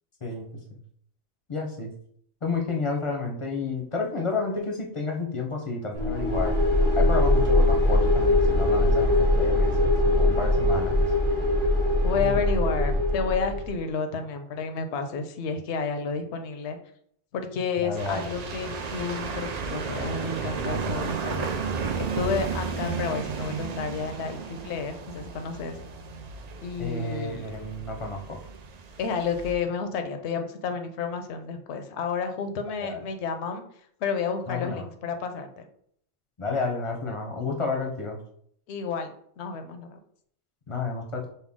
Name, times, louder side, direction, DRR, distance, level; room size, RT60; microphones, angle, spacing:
voice 1, 0.2-0.8 1.5-1.9 2.4-6.5 6.9-11.1 12.2-12.6 17.8-18.2 26.8-28.4 32.8-33.0 34.5-34.9 36.4-38.2 40.7-41.3, left 3 dB, 35° left, 1 dB, 0.6 m, -31 dB
sound 1, 5.9-13.7, left 1 dB, 30° right, 0.9 m, -22 dB
voice 2, 12.0-16.8 17.3-21.5 22.0-25.8 26.6-27.5 29.0-33.6 34.0-35.7 38.7-40.0, left 5 dB, 75° left, 7 dB, 0.9 m, -31 dB
sound 2, 17.9-29.5, right 5 dB, 55° right, 0.4 m, -33 dB
5.5 x 2.2 x 3.5 m, 0.65 s
omnidirectional pair, 1.1 m